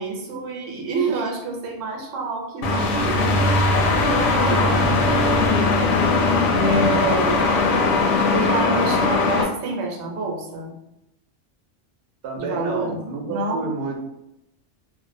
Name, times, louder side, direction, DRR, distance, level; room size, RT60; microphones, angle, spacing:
voice 1, 0.0-3.4 3.9-5.7 6.5-7.5 8.2-10.7 12.4-13.0 13.3-13.7, right 3 dB, 90° right, 0 dB, 1.0 m, -28 dB
sound 1, 2.6-9.4, left 3 dB, 80° left, 0.9 m, -19 dB
voice 2, 12.2-14.0, right 3 dB, 65° right, 1 dB, 0.7 m, -29 dB
2.5 x 2.1 x 2.5 m, 0.88 s
omnidirectional pair, 1.2 m